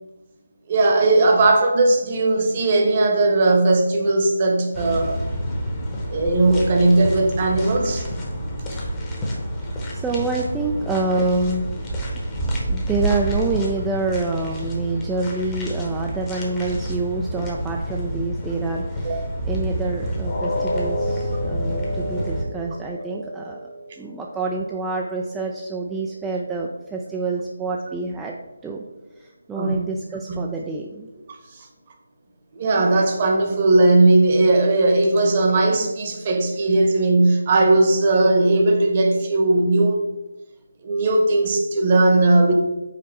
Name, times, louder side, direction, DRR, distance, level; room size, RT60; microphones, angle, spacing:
voice 1, 0.7-5.2 6.1-8.1 18.6-18.7 19.0-19.2 29.6-29.8 30.3-30.4 31.5-31.7 32.5-40.1 40.8-42.5, right 2 dB, 30° right, 3 dB, 1.0 m, -18 dB
sound 1, 4.7-22.4, right 1 dB, 15° left, 1.0 m, -28 dB
voice 2, 9.9-11.7 12.7-23.7 24.0-28.4 28.6-28.8 29.2-31.1, right 3 dB, 5° right, -1 dB, 0.3 m, -27 dB
sound 2, 20.3-26.2 26.6-26.8 27.3-27.4, left 1 dB, 45° left, 1.4 m, -32 dB
5.2 x 4.2 x 4.2 m, 1.0 s
figure-of-eight pair, 155°, 0 cm